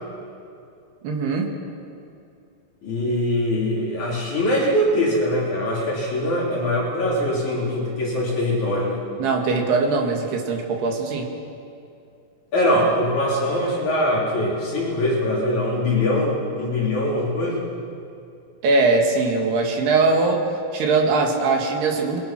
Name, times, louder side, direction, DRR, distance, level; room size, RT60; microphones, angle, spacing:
voice 1, 1.0-1.5 9.2-11.3 18.6-20.4 20.7-22.2, right 3 dB, 70° right, 2 dB, 4.1 m, -21 dB
voice 2, 2.8-9.0 12.5-17.7, left 1 dB, 45° left, -5 dB, 4.6 m, -22 dB
25.5 x 21.5 x 6.1 m, 2.5 s
omnidirectional pair, 4.8 m